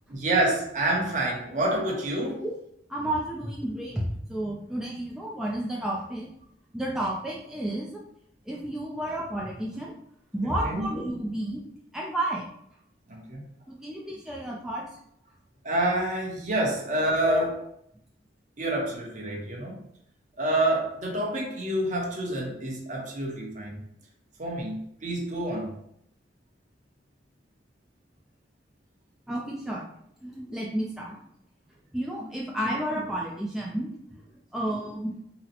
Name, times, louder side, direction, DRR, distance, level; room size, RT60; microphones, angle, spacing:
voice 1, 0.1-2.4 10.4-10.9 13.1-13.4 15.6-17.5 18.6-19.8 20.4-23.8 24.4-25.7, right 1 dB, 45° right, -2 dB, 0.9 m, -28 dB
voice 2, 2.9-6.3 6.7-8.0 8.5-9.9 10.3-11.6 11.9-12.5 13.7-14.9 17.3-17.5 29.3-29.8 30.2-31.2 31.9-33.9 34.5-35.1, right 1 dB, 5° right, -4 dB, 0.3 m, -31 dB
3.9 x 2.1 x 2.8 m, 0.73 s
head